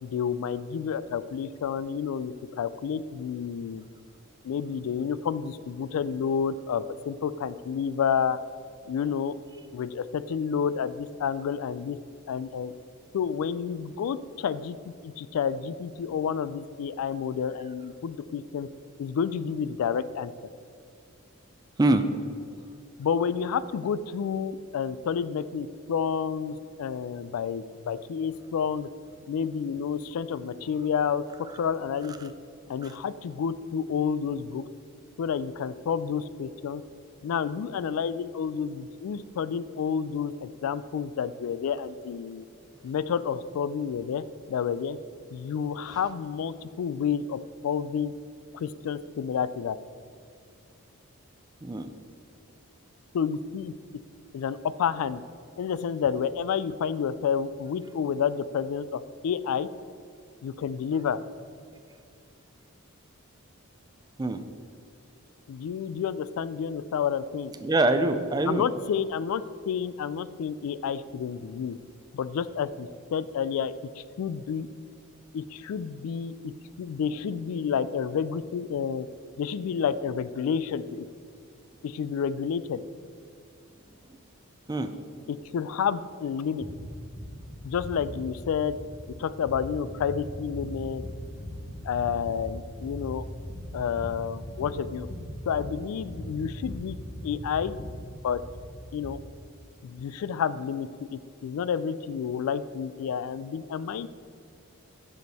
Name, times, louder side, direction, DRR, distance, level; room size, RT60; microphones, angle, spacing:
voice 1, 0.0-3.8 4.4-8.4 8.9-9.3 9.7-12.0 12.3-12.7 13.1-18.7 19.0-20.3 23.0-28.9 29.3-31.2 31.6-32.3 32.7-34.6 35.2-36.8 37.2-42.5 42.8-45.0 45.3-48.1 48.5-49.8 53.1-53.7 54.3-55.2 55.6-59.7 60.4-61.2 65.5-67.5 68.4-71.8 72.1-74.7 75.3-76.5 76.8-79.1 79.4-81.1 81.8-82.8 85.3-86.7 87.6-88.8 89.2-91.0 91.8-93.2 93.7-95.1 95.5-97.0 97.2-97.8 98.2-98.4 98.9-99.2 99.8-104.1, left 7 dB, 75° left, 16 dB, 0.3 m, -30 dB
voice 2, 67.6-68.6 84.7-84.9, right 2 dB, 20° right, 9 dB, 0.3 m, -24 dB
sound 1, 86.6-99.2, equal, 60° left, 1.5 m, -40 dB
6.8 x 6.4 x 4.2 m, 2.4 s
head